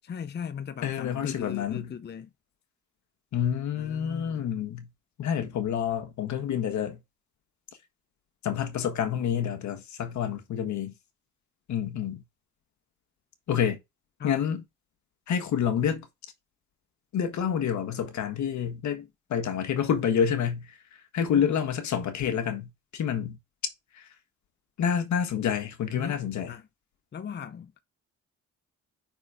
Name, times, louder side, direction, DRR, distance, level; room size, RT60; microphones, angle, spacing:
voice 1, 0.0-2.3 3.7-4.6 14.2-14.3 21.3-21.5 25.9-26.2 26.5-26.6 27.1-27.7, left 7 dB, 35° left, 0.6 m, -38 dB
voice 2, 0.8-1.9 3.3-4.9 5.2-7.0 8.4-10.9 11.7-12.2 13.5-13.8 14.2-14.6 15.3-16.1 17.1-20.8 21.1-23.4 23.9-24.1 24.8-26.5, left 8 dB, 70° left, 1.6 m, -28 dB
5.5 x 4.4 x 4.9 m
cardioid pair, 90°, 30 cm